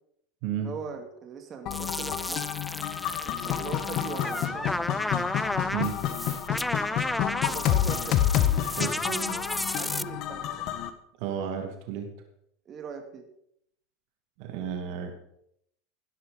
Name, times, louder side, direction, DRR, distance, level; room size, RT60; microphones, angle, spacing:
voice 1, 0.6-2.5 3.2-4.8 7.5-8.3 9.0-9.4 9.7-10.7 12.7-13.3, right 6 dB, 35° right, 4 dB, 2.4 m, -40 dB
sound 1, 1.7-10.9, left 11 dB, 50° left, 1.3 m, -29 dB
sound 2, 1.7-10.0, left 1 dB, 5° left, 0.4 m, -33 dB
voice 2, 11.2-12.1 14.4-15.1, right 8 dB, 60° right, 4 dB, 2.3 m, -32 dB
16.5 x 11.0 x 3.9 m, 0.73 s
hypercardioid pair, 85°, 0 cm